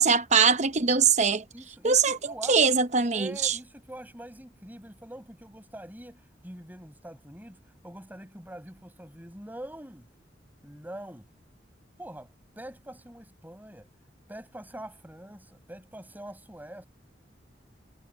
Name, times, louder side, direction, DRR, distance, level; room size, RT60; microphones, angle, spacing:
voice 1, 0.0-1.4 1.8-3.5, right 5 dB, 40° right, 0.9 m, -22 dB
voice 2, 1.5-2.8 3.1-10.1 10.6-11.3 12.0-13.9 14.3-16.9, right 1 dB, 10° right, 6.8 m, -44 dB
head